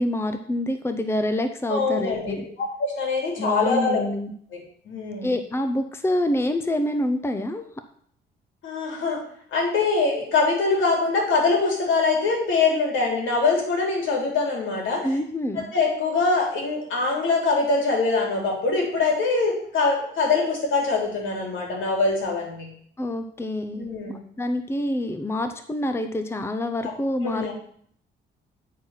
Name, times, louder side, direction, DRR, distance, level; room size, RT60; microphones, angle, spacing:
voice 1, 0.0-2.4 3.4-4.3 5.2-7.7 15.0-15.7 23.0-27.5, left 1 dB, 10° left, 8 dB, 0.7 m, -26 dB
voice 2, 1.7-2.4 2.8-4.0 4.8-5.3 8.6-9.2 9.5-15.2 15.5-22.7 23.7-24.2 27.2-27.5, left 4 dB, 75° left, 0 dB, 3.3 m, -23 dB
9.3 x 4.6 x 5.7 m, 0.62 s
cardioid pair, 90°, 20 cm